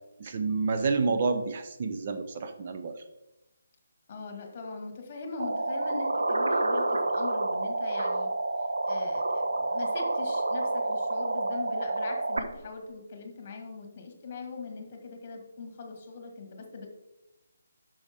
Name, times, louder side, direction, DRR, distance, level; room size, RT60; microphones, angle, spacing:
voice 1, 0.2-2.9, right 4 dB, 35° right, 6 dB, 0.6 m, -29 dB
voice 2, 4.1-8.3 8.8-16.9, left 3 dB, 35° left, 4 dB, 1.5 m, -41 dB
sound 1, 5.4-12.4, right 2 dB, 65° right, 0.9 m, -29 dB
8.0 x 6.3 x 3.4 m, 0.94 s
figure-of-eight pair, 145°, 0 cm